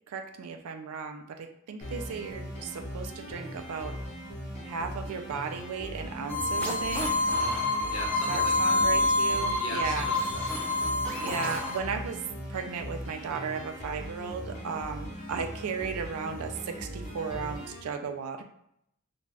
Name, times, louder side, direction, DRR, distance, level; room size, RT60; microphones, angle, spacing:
voice 1, 0.1-3.9 4.6-7.1 8.3-10.1 11.2-12.2 12.5-18.4, right 5 dB, 80° right, 5 dB, 0.4 m, -35 dB
sound 1, 1.8-17.8, equal, 35° left, 0.8 m, -40 dB
sound 2, 6.3-11.8, left 2 dB, 5° left, 0.4 m, -27 dB
voice 2, 7.3-8.8 9.6-10.5, left 2 dB, 65° left, 0 dB, 0.7 m, -40 dB
2.5 x 2.2 x 3.2 m, 0.74 s
head